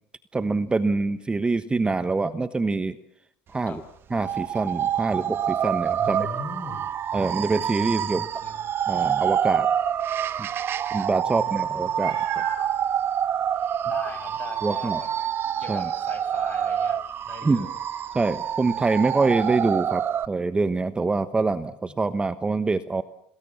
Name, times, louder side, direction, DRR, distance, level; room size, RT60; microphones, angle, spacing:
voice 1, 0.3-3.0 3.5-3.8 4.1-6.3 7.1-8.3 8.9-9.7 10.4-10.5 10.9-12.4 14.6-15.0 15.7-15.9 17.4-17.7 18.1-23.0, right 3 dB, 20° right, 12 dB, 1.2 m, -25 dB
sound 1, 4.1-20.3, right 9 dB, 45° right, 1.1 m, -27 dB
voice 2, 6.0-6.9 8.1-8.6 11.2-12.2 13.8-15.1 15.6-17.0 17.3-17.7, left 4 dB, 30° left, 9 dB, 6.3 m, -39 dB
Meow, 12.0-12.7 13.5-13.6 14.0-14.2 18.1-18.2, right 8 dB, 60° right, 6.2 m, -35 dB
27.5 x 20.0 x 7.2 m, 0.71 s
supercardioid pair, 90°, 5 cm